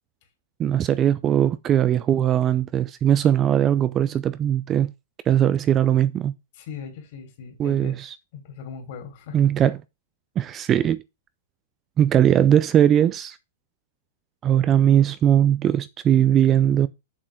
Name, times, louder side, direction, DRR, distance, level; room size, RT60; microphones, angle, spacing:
voice 1, 0.6-4.9 5.3-6.3 7.6-8.1 9.3-9.8 10.4-11.0 12.0-13.4 14.4-16.9, right 10 dB, 20° right, 0.4 m, -19 dB
voice 2, 6.5-8.0 8.3-9.4, left 6 dB, 50° left, 3.1 m, -39 dB
7.5 x 6.4 x 4.6 m
hypercardioid pair, 155°, 0 cm